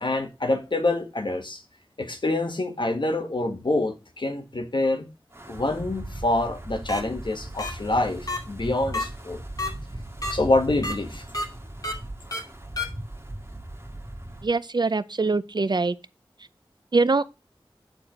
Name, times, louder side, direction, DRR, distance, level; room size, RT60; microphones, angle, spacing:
voice 1, 0.0-1.6 2.0-5.1 5.5-9.4 10.3-11.2, left 2 dB, 60° left, 1.6 m, -26 dB
Wind, 5.3-14.5, right 1 dB, 30° right, 1.8 m, -38 dB
sound 1, 6.9-7.0 7.6-7.7 8.3-8.4 8.9-9.0 9.6-9.7 10.2-10.3 10.8-10.9 11.3-11.4 11.8-11.9 12.3-12.4 12.8-12.9, left 2 dB, 40° left, 2.6 m, -28 dB
voice 2, 14.4-16.0 16.9-17.2, right 3 dB, 50° right, 0.5 m, -23 dB
8.9 x 4.4 x 5.0 m
wide cardioid pair, 65°, 9 cm